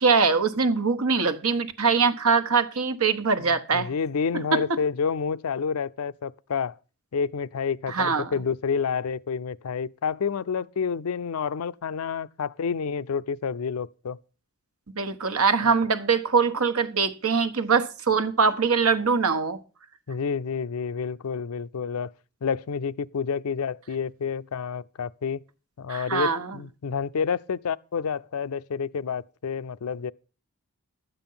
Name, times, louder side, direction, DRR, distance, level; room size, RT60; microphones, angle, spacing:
voice 1, 0.0-3.9 4.3-4.6 7.9-8.3 14.9-19.6 25.9-26.6, right 5 dB, 75° right, 1.2 m, -23 dB
voice 2, 3.4-6.8 7.1-14.2 15.6-15.7 20.1-22.1 22.4-25.4 25.8-30.1, left 6 dB, 80° left, 0.5 m, -29 dB
12.0 x 9.0 x 5.6 m
head